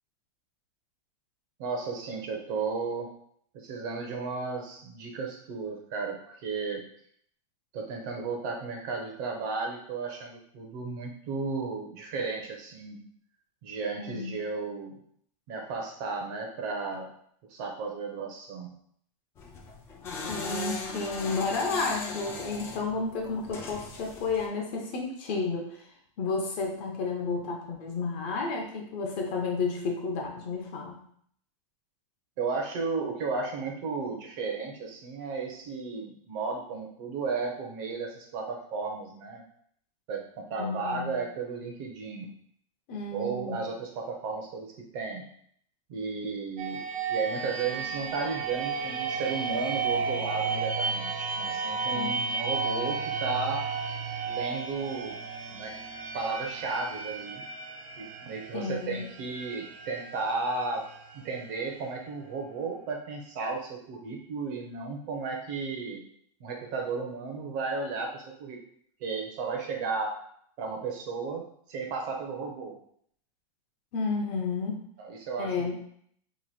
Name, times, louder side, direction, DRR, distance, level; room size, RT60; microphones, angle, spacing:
voice 1, 1.6-3.1 3.5-6.8 7.7-13.0 13.6-15.0 15.5-17.1 17.5-18.7 32.4-39.4 40.1-42.3 43.1-45.2 45.9-46.8 47.1-53.7 54.3-55.2 55.5-55.8 56.1-57.4 58.0-66.0 66.4-68.6 69.0-70.2 70.6-72.8 75.0-75.7, right 4 dB, 40° right, 2 dB, 0.7 m, -34 dB
voice 2, 14.0-14.3 20.3-25.9 26.2-31.0 40.6-41.1 42.9-43.6 51.9-52.2 58.5-59.0 73.9-74.8 75.4-75.7, left 4 dB, 35° left, 1 dB, 0.7 m, -31 dB
sound 1, 19.4-24.5, left 3 dB, 15° left, 0.3 m, -38 dB
sound 2, 46.6-62.2, right 5 dB, 80° right, 0.8 m, -34 dB
3.0 x 2.6 x 4.1 m, 0.65 s
supercardioid pair, 165°, 17 cm